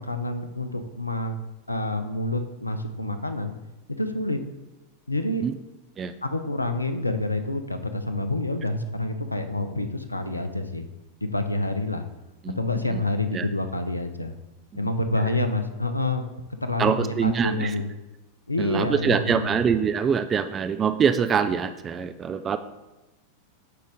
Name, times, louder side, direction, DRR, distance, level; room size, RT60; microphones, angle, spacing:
voice 1, 0.0-1.4 1.7-3.5 4.0-4.4 5.1-5.4 6.2-10.9 11.2-12.0 12.6-14.3 14.7-16.2 16.6-17.9 18.5-19.6, left 2 dB, 85° left, 9 dB, 0.5 m, -27 dB
voice 2, 16.8-17.8 18.6-22.6, right 7 dB, 25° right, 10 dB, 0.3 m, -24 dB
8.4 x 3.8 x 3.9 m, 1.0 s
figure-of-eight pair, 90°, 0 cm